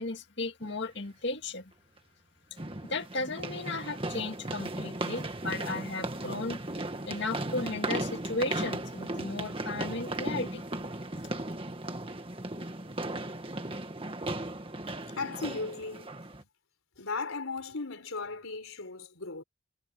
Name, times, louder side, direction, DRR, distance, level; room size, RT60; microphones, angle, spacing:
voice 1, 0.0-1.7 2.8-6.6 7.0-10.6, left 3 dB, 55° left, 2.1 m, -35 dB
sound 1, 0.6-0.7 2.6-16.4, right 2 dB, 25° right, 1.8 m, -36 dB
voice 2, 15.2-16.1 17.0-19.4, left 3 dB, 85° left, 4.0 m, -36 dB
head